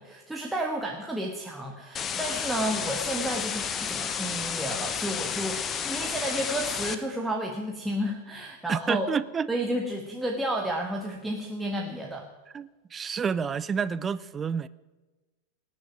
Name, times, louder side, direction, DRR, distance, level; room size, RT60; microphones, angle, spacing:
voice 1, 0.0-9.1 9.5-12.3, right 1 dB, 5° right, 1.5 m, -31 dB
sound 1, 1.9-6.9, left 7 dB, 25° left, 1.0 m, -31 dB
voice 2, 8.7-9.5 12.5-14.7, right 6 dB, 20° right, 0.5 m, -29 dB
19.0 x 6.5 x 9.4 m
figure-of-eight pair, 90°, 0 cm